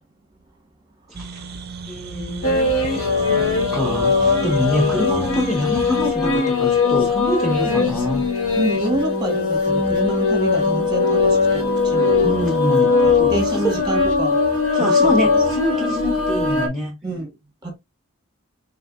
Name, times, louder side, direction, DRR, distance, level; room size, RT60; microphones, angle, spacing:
voice 1, 1.1-1.5 1.8-8.3 12.2-13.7 14.7-16.9, left 1 dB, ahead, 0.6 m, -25 dB
sound 1, 1.1-6.1, right 4 dB, 45° right, 0.5 m, -33 dB
sound 2, 2.4-16.7, left 4 dB, 85° left, 1.9 m, -20 dB
voice 2, 8.6-13.0 13.3-14.4 14.8-15.0 17.0-17.3 17.6-17.8, right 1 dB, 20° right, 1.3 m, -27 dB
4.5 x 3.5 x 2.4 m
head